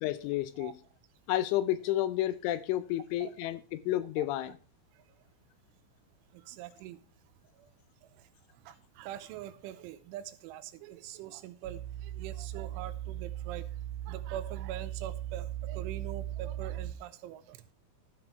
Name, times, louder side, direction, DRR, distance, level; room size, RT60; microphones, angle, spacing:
voice 1, 0.0-0.8 1.3-4.6, left 14 dB, 85° left, 14 dB, 3.1 m, -31 dB
voice 2, 6.5-7.0 8.7-13.7 14.1-17.6, right 12 dB, 85° right, 11 dB, 3.0 m, -43 dB
sound 1, 11.6-16.9, right 12 dB, 70° right, 2.4 m, -38 dB
12.5 x 6.0 x 4.5 m, 0.38 s
omnidirectional pair, 5.6 m